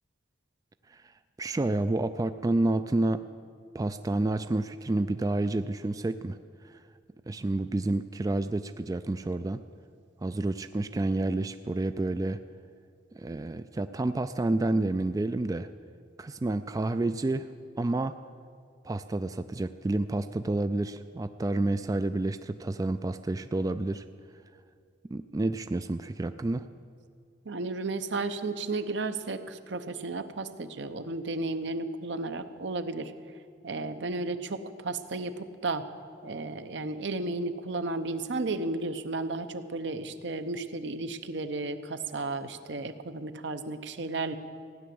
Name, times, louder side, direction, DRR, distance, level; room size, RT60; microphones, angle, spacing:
voice 1, 1.4-3.2 3.7-6.4 6.6-6.8 7.3-9.6 10.2-12.4 13.1-15.7 16.2-17.5 17.8-18.2 18.8-24.0 25.1-26.7, right 2 dB, 20° right, 10 dB, 0.3 m, -29 dB
voice 2, 27.5-33.1 33.6-35.9 36.2-44.4, right 3 dB, 70° right, 9 dB, 0.9 m, -33 dB
15.5 x 10.0 x 7.7 m, 2.3 s
head